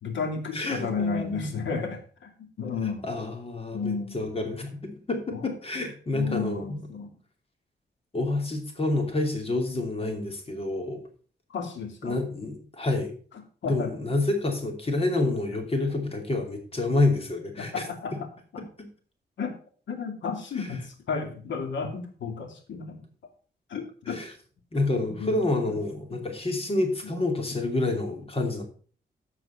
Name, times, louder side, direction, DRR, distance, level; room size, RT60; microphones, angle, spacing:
voice 1, 0.0-3.1 3.7-4.2 5.3-5.5 6.1-7.1 11.5-12.2 13.6-13.9 15.8-15.9 17.6-18.1 19.4-19.6 19.9-23.0 23.7-24.2 25.2-25.4 25.7-25.8, left 5 dB, 85° left, 4 dB, 2.6 m, -32 dB
voice 2, 0.5-1.5 3.0-4.7 5.1-6.8 8.1-11.0 12.0-13.1 13.6-17.8 18.8-18.9 20.6-20.7 24.1-24.3 24.7-28.6, left 2 dB, 30° left, 4 dB, 2.8 m, -28 dB
14.0 x 4.9 x 5.6 m, 0.42 s
wide cardioid pair, 115°, 19 cm